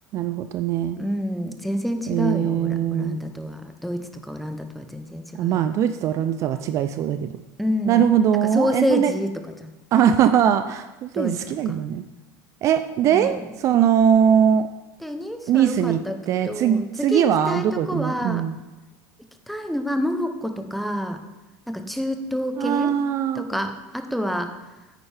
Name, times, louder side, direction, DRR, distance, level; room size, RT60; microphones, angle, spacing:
voice 1, 0.1-1.0 2.1-3.2 5.4-7.3 7.9-9.1 9.9-12.0 12.6-14.7 15.5-16.0 16.3-18.6 22.6-23.5, right 9 dB, 35° right, 10 dB, 0.4 m, -21 dB
voice 2, 1.0-5.7 7.6-9.7 11.1-11.4 11.7-11.8 13.1-13.5 15.0-18.5 19.5-21.2 21.7-22.9 23.3-24.5, equal, ahead, 6 dB, 0.7 m, -28 dB
10.0 x 9.0 x 3.3 m, 1.1 s
supercardioid pair, 155°, 9 cm